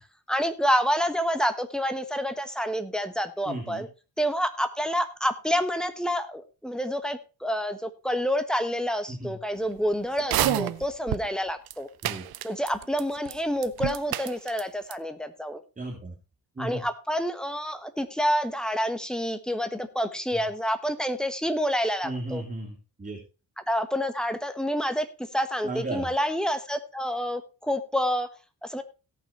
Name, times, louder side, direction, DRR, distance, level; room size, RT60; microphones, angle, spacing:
voice 1, 0.3-3.9 4.2-11.9 12.4-15.6 16.6-22.4 23.7-25.1 25.3-28.3 28.6-28.8, equal, ahead, 10 dB, 1.2 m, -28 dB
voice 2, 3.4-3.9 9.1-9.3 10.4-10.7 12.0-12.2 15.8-16.1 16.6-16.8 20.3-20.5 22.0-23.2 25.6-26.1, right 1 dB, 20° right, -1 dB, 3.0 m, -35 dB
sound 1, 10.2-11.3 11.7-11.8 12.0-13.0 13.3-13.4 13.6-14.6 14.9-15.0, right 13 dB, 80° right, 0.7 m, -28 dB
17.0 x 5.8 x 4.3 m, 0.32 s
cardioid pair, 125°, 37 cm